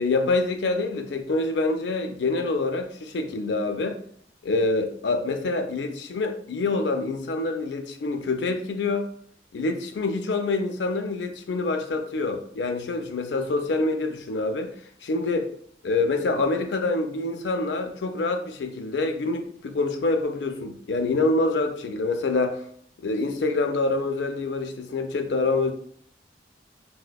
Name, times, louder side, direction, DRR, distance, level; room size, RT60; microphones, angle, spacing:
voice 1, 0.0-4.0 4.4-9.1 9.5-14.7 15.0-15.5 15.8-22.6 23.0-25.7, left 3 dB, 90° left, 6 dB, 0.4 m, -26 dB
4.8 x 2.1 x 2.3 m, 0.62 s
head